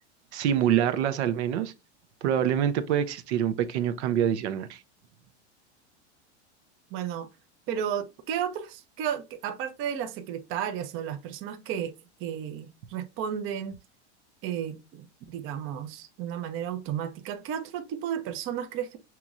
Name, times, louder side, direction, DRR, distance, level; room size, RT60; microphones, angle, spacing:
voice 1, 0.3-1.7 2.2-4.8, right 9 dB, 70° right, 0.7 m, -25 dB
voice 2, 6.9-7.3 7.7-11.9 12.2-13.8 14.4-19.0, right 9 dB, 35° right, 0.7 m, -33 dB
6.7 x 3.0 x 2.4 m
supercardioid pair, 130°, 35 cm